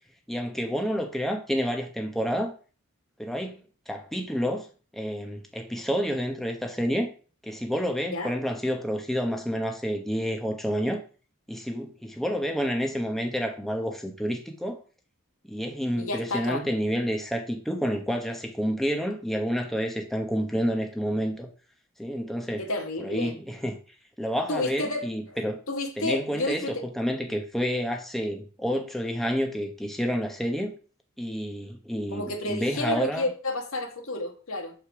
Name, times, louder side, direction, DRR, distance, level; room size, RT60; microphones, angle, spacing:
voice 1, 0.3-2.5 3.2-4.7 4.9-7.1 7.4-11.0 11.5-14.8 15.5-21.5 22.0-22.7 23.0-23.8 24.2-25.6 26.0-30.7 31.2-33.3, equal, ahead, 1.0 m, -29 dB
voice 2, 16.0-16.6 22.6-23.4 24.5-25.4 25.7-26.9 32.1-34.7, left 2 dB, 70° left, 1.6 m, -31 dB
6.6 x 4.9 x 5.8 m
head